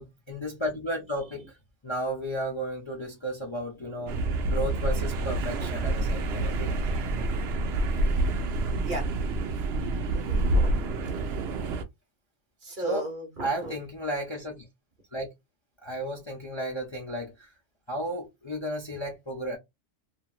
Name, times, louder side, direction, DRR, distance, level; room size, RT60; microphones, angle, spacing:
voice 1, 0.0-1.6 1.8-4.2 4.5-6.8 7.9-8.0 12.8-13.1 13.4-14.6 15.1-15.3 15.8-17.5 17.9-19.6, right 1 dB, 30° left, 0.6 m, -33 dB
sound 1, 4.1-11.8, right 2 dB, 65° right, 0.8 m, -27 dB
voice 2, 7.1-7.6 8.8-9.1 10.1-10.7 12.6-13.8, right 1 dB, 45° right, 1.0 m, -37 dB
2.9 x 2.6 x 2.3 m
omnidirectional pair, 1.2 m